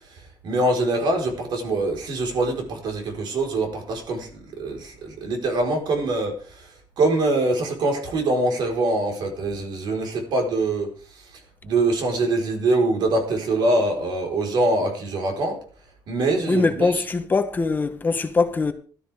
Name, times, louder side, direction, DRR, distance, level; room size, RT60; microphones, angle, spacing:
voice 1, 0.1-6.7 7.0-10.9 11.1-11.2 11.6-15.6 16.1-17.0, right 2 dB, 65° right, 4.3 m, -24 dB
voice 2, 16.5-18.7, left 4 dB, 25° left, 1.0 m, -22 dB
17.0 x 12.5 x 3.5 m
cardioid pair, 160°, 8 cm